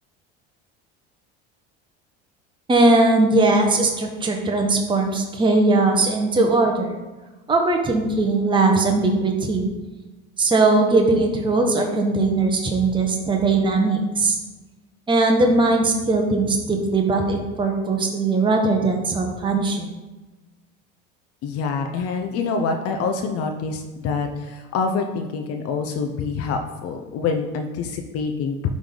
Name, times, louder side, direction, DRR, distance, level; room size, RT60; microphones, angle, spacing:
voice 1, 2.7-7.0 7.5-9.7 10.4-14.4 15.1-19.9, right 3 dB, 15° right, 2 dB, 1.1 m, -19 dB
voice 2, 21.4-28.7, left 5 dB, 55° left, 4 dB, 0.8 m, -26 dB
10.5 x 3.5 x 3.9 m, 1.1 s
supercardioid pair, 100°, 30 cm